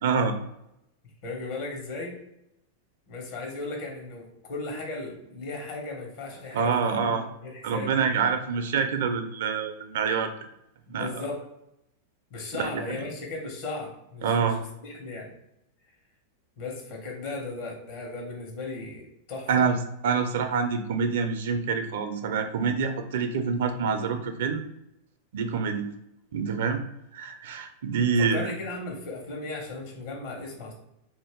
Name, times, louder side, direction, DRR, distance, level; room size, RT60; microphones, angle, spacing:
voice 1, 0.0-0.3 6.5-7.3 7.6-10.3 10.9-11.2 12.5-13.0 14.2-14.6 19.5-19.8 20.0-24.6 25.3-25.9 26.3-26.8 27.1-28.5, right 5 dB, 70° right, 7 dB, 0.5 m, -26 dB
voice 2, 1.2-2.2 3.1-8.3 10.9-11.4 12.3-15.3 16.6-19.7 28.2-30.7, left 3 dB, 65° left, 0 dB, 1.3 m, -36 dB
2.7 x 2.5 x 3.6 m, 0.84 s
hypercardioid pair, 110°, 0 cm